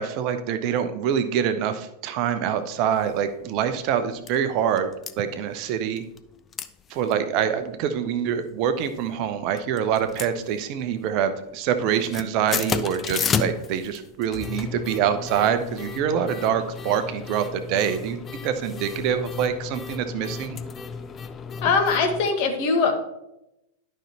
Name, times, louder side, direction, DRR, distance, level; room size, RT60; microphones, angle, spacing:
voice 1, 0.0-4.9 5.2-6.0 6.9-18.2 18.4-20.6, right 8 dB, 45° right, 9 dB, 0.7 m, -25 dB
sound 1, 3.0-3.1 3.6-3.7 3.9-4.4 4.8-5.1 6.0-6.3 6.5-6.7 7.0-7.1 7.6-8.0 8.7-9.2 9.6-10.9 11.2-11.5 11.8-22.3, left 6 dB, 25° left, 0.4 m, -33 dB
voice 2, 21.6-22.9, left 4 dB, 45° left, 3 dB, 1.4 m, -21 dB
11.5 x 5.4 x 2.9 m, 0.86 s
figure-of-eight pair, 90°, 0 cm